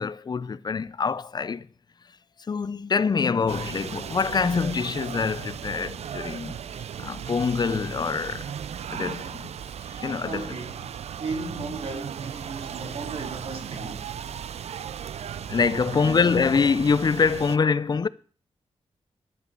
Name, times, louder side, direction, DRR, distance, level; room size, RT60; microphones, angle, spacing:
voice 1, 0.0-1.7 2.5-6.6 7.0-8.5 8.9-9.5 10.0-10.5 15.5-18.1, left 5 dB, 40° left, 0.6 m, -25 dB
sound 1, 3.5-17.6, right 8 dB, 85° right, 0.5 m, -36 dB
voice 2, 10.2-14.2 15.9-16.4, right 3 dB, 60° right, 2.5 m, -36 dB
11.0 x 10.5 x 6.8 m
wide cardioid pair, 135°, 11 cm